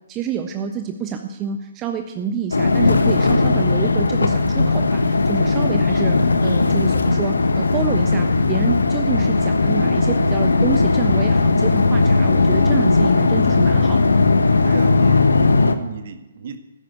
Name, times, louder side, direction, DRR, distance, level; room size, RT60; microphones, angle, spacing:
voice 1, 0.1-14.2, right 7 dB, 20° right, 5 dB, 1.0 m, -28 dB
sound 1, 2.5-15.8, left 3 dB, 70° left, 1.4 m, -17 dB
voice 2, 14.6-16.6, right 7 dB, 45° right, 9 dB, 1.7 m, -36 dB
15.0 x 11.5 x 8.4 m, 1.0 s
figure-of-eight pair, 130°, 0 cm